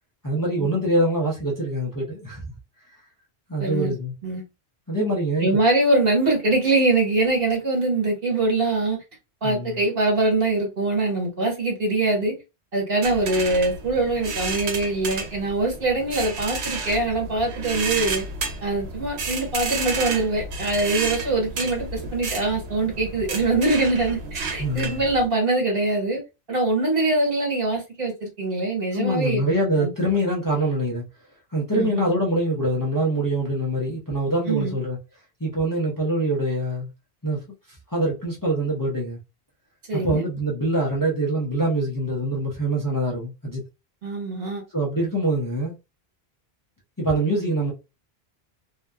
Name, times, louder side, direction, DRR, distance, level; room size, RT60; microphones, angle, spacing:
voice 1, 0.2-2.6 3.5-4.1 4.9-5.6 9.4-9.8 24.6-25.0 28.9-31.0 31.5-35.0 35.4-36.9 37.2-37.4 37.9-39.2 39.9-43.6 44.7-45.7 47.0-47.7, right 1 dB, 20° left, 0.7 m, -24 dB
voice 2, 3.6-3.9 4.2-4.4 5.4-9.0 9.4-12.3 12.7-18.2 18.6-26.2 26.5-29.4 29.8-29.9 31.7-32.1 34.5-34.7 39.9-40.2 44.0-44.6, right 2 dB, 60° right, 1.4 m, -23 dB
sound 1, 13.0-25.3, right 4 dB, 85° right, 0.9 m, -31 dB
2.7 x 2.3 x 2.2 m
omnidirectional pair, 1.1 m